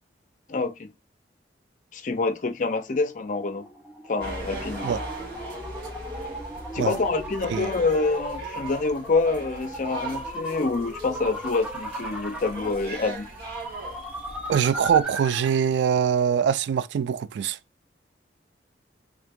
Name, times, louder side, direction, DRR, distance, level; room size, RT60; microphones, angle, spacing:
voice 1, 0.5-0.9 1.9-3.7 4.1-4.9 6.7-13.3, left 3 dB, 45° left, 0.5 m, -26 dB
sound 1, 3.0-15.7, equal, 5° right, 0.9 m, -37 dB
sound 2, 4.2-15.0, right 1 dB, 60° right, 1.9 m, -39 dB
voice 2, 14.5-17.6, right 8 dB, 80° right, 0.3 m, -23 dB
3.5 x 2.9 x 3.6 m
head